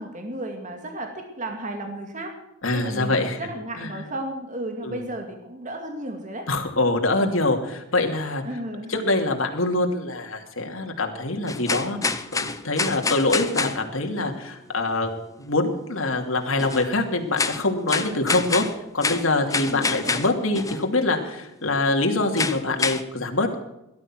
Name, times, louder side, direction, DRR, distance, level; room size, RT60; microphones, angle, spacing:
voice 1, 0.0-2.3 2.7-6.5 8.4-8.9 19.5-20.2, right 1 dB, 40° right, 4 dB, 2.3 m, -34 dB
voice 2, 2.6-3.4 3.8-3.9 4.8-5.0 6.5-8.4 8.9-15.1 15.4-18.7 18.9-23.6, left 2 dB, 80° left, 3 dB, 2.7 m, -24 dB
sound 1, 11.5-13.8 16.6-16.9 17.4-20.8 22.4-23.0, left 4 dB, 15° left, 0.9 m, -27 dB
18.0 x 12.0 x 6.1 m, 0.88 s
head